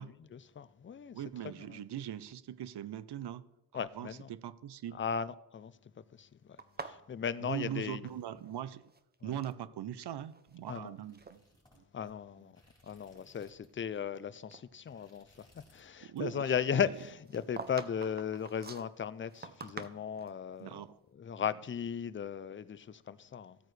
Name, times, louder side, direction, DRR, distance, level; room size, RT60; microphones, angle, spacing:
voice 1, 0.0-1.2 1.6-1.8 3.7-4.3 4.9-8.1 9.2-9.4 10.7-10.9 11.9-12.6 12.8-20.7 21.1-23.7, left 7 dB, 30° left, 0.4 m, -37 dB
voice 2, 1.1-5.0 7.4-8.8 9.2-11.4 11.7-11.8 16.0-16.9 20.6-21.0, right 11 dB, 75° right, 0.6 m, -41 dB
sound 1, 6.6-8.6 8.8-9.6 10.2-10.8 11.1-11.4 12.0-12.1 12.7-14.2 14.5-14.6 16.9-20.4, right 4 dB, 25° right, 0.6 m, -47 dB
sound 2, 10.5-13.8 14.1-14.4 14.7-15.9 16.2-16.5 16.8-17.8, left 1 dB, 10° left, 3.8 m, -65 dB
14.5 x 8.9 x 3.3 m
wide cardioid pair, 105°, 41 cm